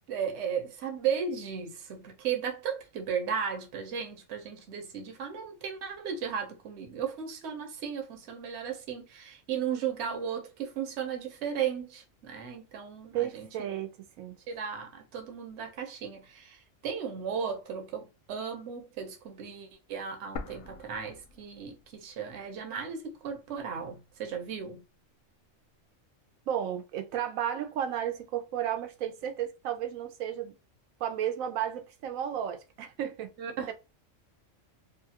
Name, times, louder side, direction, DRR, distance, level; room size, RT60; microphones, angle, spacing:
voice 1, 0.1-13.5 14.5-24.8 33.4-33.7, right 7 dB, 60° right, 1.0 m, -35 dB
voice 2, 13.1-14.3 26.5-30.6 31.0-33.3 33.7-33.8, right 10 dB, 90° right, 1.0 m, -33 dB
sound 1, 20.4-22.3 22.6-22.7 23.4-24.4, left 4 dB, 60° left, 0.6 m, -44 dB
2.7 x 2.4 x 2.7 m
omnidirectional pair, 1.4 m